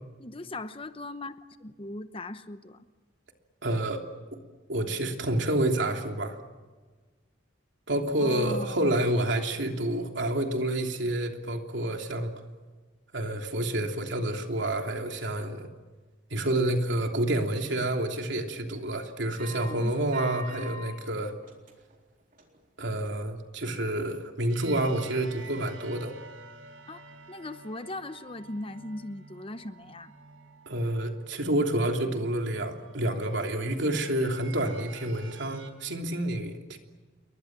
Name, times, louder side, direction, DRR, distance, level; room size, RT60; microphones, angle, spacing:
voice 1, 0.2-2.9 8.2-8.9 19.6-19.9 26.9-30.1, left 2 dB, 30° left, 11 dB, 0.9 m, -39 dB
voice 2, 3.6-4.0 4.7-6.4 7.9-12.3 13.1-15.7 16.3-21.3 22.8-26.1 30.7-36.8, right 1 dB, 65° right, 3 dB, 3.1 m, -28 dB
sound 1, 19.4-20.9 21.3-21.9 22.3-22.6 23.0-23.1, equal, 45° right, 4.0 m, -44 dB
sound 2, 24.5-35.7, right 4 dB, 80° right, 4.5 m, -49 dB
29.5 x 23.0 x 7.5 m, 1.4 s
head